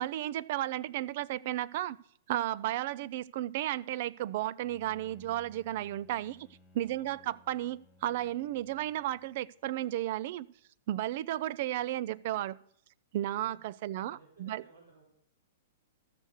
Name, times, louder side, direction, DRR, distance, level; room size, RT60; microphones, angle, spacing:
voice 1, 0.0-2.0 2.3-6.4 6.7-10.5 10.9-12.6 13.1-14.6, right 13 dB, 55° right, 0.4 m, -33 dB
Bowed string instrument, 4.6-9.6, left 1 dB, 5° left, 1.3 m, -61 dB
voice 2, 6.9-7.4 14.0-15.0, right 3 dB, 85° right, 4.6 m, -58 dB
13.5 x 6.5 x 6.5 m
hypercardioid pair, 135°, 0 cm